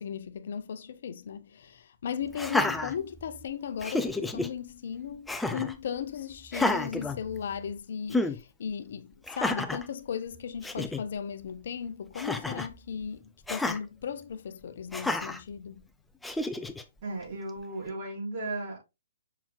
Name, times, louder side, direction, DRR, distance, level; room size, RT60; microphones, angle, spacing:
voice 1, 0.0-15.8, left 7 dB, 55° left, 0.7 m, -37 dB
Laughter, 2.3-3.4 3.8-4.5 5.3-5.8 6.5-7.7 8.1-8.4 9.3-9.9 10.4-10.5 10.6-11.0 12.1-12.7 13.5-13.8 14.9-15.4 16.2-16.8, left 2 dB, 5° left, 0.5 m, -30 dB
voice 2, 17.0-18.8, right 2 dB, 40° right, 4.5 m, -35 dB
7.1 x 6.0 x 2.3 m
figure-of-eight pair, 125°, 0 cm